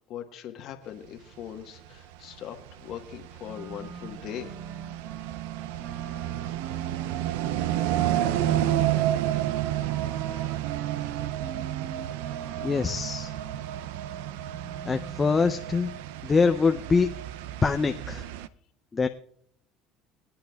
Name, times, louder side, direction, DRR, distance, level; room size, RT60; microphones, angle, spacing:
voice 1, 0.0-4.5, left 10 dB, 60° left, 5 dB, 1.2 m, -40 dB
sound 1, 1.9-18.5, right 12 dB, 80° right, 0.4 m, -31 dB
Wind instrument woodwind instrument, 3.5-15.5, right 7 dB, 60° right, 1.4 m, -42 dB
voice 2, 12.6-13.3 14.9-15.9 16.2-17.1 17.6-18.3 18.9-19.1, left 4 dB, 25° left, 7 dB, 0.5 m, -24 dB
24.5 x 8.7 x 2.3 m, 0.63 s
supercardioid pair, 85°, 0 cm